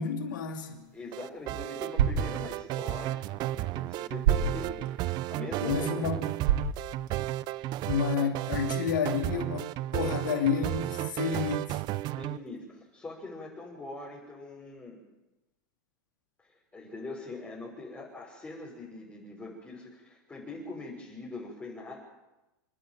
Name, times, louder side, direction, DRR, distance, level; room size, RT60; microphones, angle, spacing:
voice 1, 0.0-0.9 5.6-6.2 7.8-11.8, left 6 dB, 85° left, 2.9 m, -30 dB
sound 1, 0.7-7.6, right 8 dB, 75° right, 3.4 m, -33 dB
voice 2, 0.9-3.2 3.5-6.2 8.2-8.3 11.4-11.5 12.1-15.0 16.7-22.0, left 2 dB, 15° left, 6.2 m, -42 dB
sound 2, 1.1-12.4, right 16 dB, 45° right, 0.7 m, -33 dB
29.0 x 11.0 x 9.4 m
hypercardioid pair, 115°, 10 cm